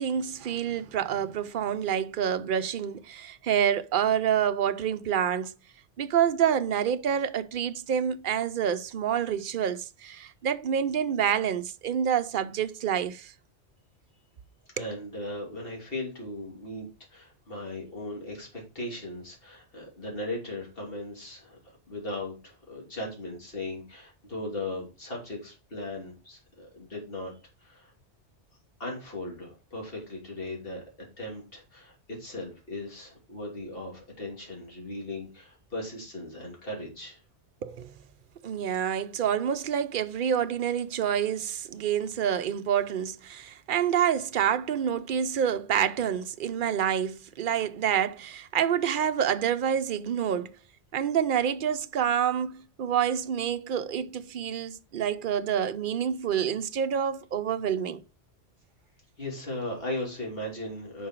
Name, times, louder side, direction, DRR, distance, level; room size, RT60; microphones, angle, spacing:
voice 1, 0.0-5.5 6.0-13.3 14.8-14.9 37.6-37.9 38.4-50.6 50.9-58.0, right 9 dB, 55° right, 0.7 m, -27 dB
voice 2, 14.8-21.6 21.9-27.9 28.8-30.8 31.2-37.2 59.2-61.1, left 1 dB, 55° left, 3.3 m, -37 dB
8.7 x 5.5 x 4.5 m
omnidirectional pair, 1.2 m